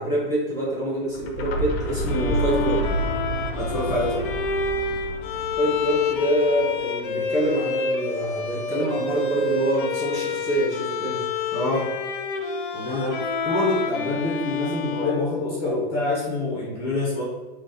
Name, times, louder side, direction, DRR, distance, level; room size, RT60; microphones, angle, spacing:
voice 1, 0.0-2.8 5.6-11.3, right 1 dB, 10° right, -8 dB, 1.5 m, -25 dB
sound 1, 1.1-6.9, right 2 dB, 85° left, 0.9 m, -30 dB
Bowed string instrument, 2.1-16.0, left 4 dB, 55° left, 0.6 m, -28 dB
voice 2, 3.5-4.2 11.5-11.9 12.7-17.2, left 2 dB, 20° left, -6 dB, 0.8 m, -26 dB
3.9 x 2.4 x 3.8 m, 1.3 s
hypercardioid pair, 160°, 31 cm